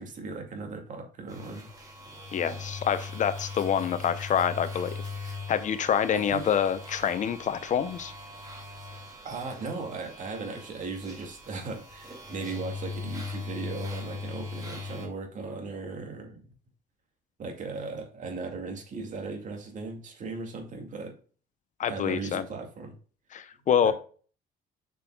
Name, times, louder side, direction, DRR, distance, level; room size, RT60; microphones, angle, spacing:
voice 1, 0.0-1.7 6.1-6.4 9.2-16.5 17.4-21.2 21.9-23.0 23.8-23.9, right 4 dB, 50° right, 4 dB, 2.2 m, -37 dB
sound 1, 1.3-15.1, left 3 dB, 20° right, 2.5 m, -40 dB
voice 2, 2.3-5.0 5.5-8.1 21.8-22.4 23.3-23.9, left 8 dB, 45° left, 12 dB, 0.7 m, -26 dB
7.4 x 6.1 x 2.3 m, 0.41 s
cardioid pair, 110°, 17 cm